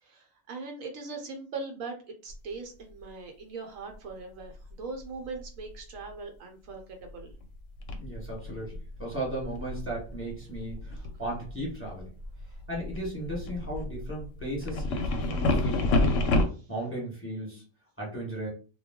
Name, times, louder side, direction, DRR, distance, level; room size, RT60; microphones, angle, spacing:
voice 1, 0.0-7.3 16.4-16.7, right 4 dB, 75° right, 3 dB, 1.0 m, -40 dB
sound 1, 2.3-2.4 4.5-4.7 5.0-5.8 7.1-7.4 7.8-16.4, left 2 dB, 70° left, 0.9 m, -30 dB
voice 2, 8.0-12.1 12.7-16.2 16.7-17.6 18.0-18.5, right 1 dB, 10° left, -3 dB, 1.1 m, -36 dB
2.3 x 2.2 x 3.5 m, 0.36 s
omnidirectional pair, 1.4 m